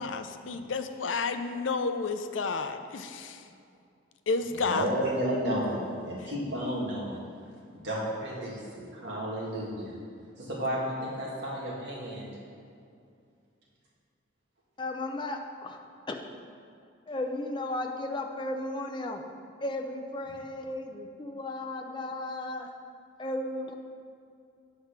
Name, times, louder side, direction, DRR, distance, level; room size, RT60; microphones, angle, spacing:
voice 1, 0.0-3.4 4.3-4.9, left 4 dB, 75° left, 8 dB, 0.5 m, -31 dB
voice 2, 4.5-7.2 7.7-9.9 10.4-12.3, equal, 60° right, -5 dB, 2.1 m, -32 dB
voice 3, 14.8-15.8 16.1-16.2 17.1-19.2 19.6-22.7 23.2-23.8, left 1 dB, 25° left, 3 dB, 0.5 m, -35 dB
8.4 x 4.6 x 5.9 m, 2.4 s
head